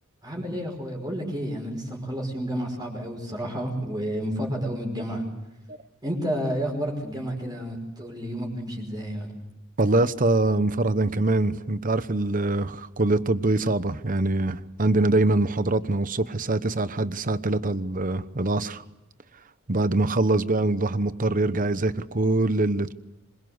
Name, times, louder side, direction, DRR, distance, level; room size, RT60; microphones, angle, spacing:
voice 1, 0.2-5.3 6.0-9.3, equal, 20° right, 0 dB, 5.5 m, -30 dB
voice 2, 9.8-18.8 19.7-22.9, right 2 dB, 40° right, 13 dB, 1.0 m, -24 dB
26.0 x 23.0 x 8.0 m, 0.94 s
head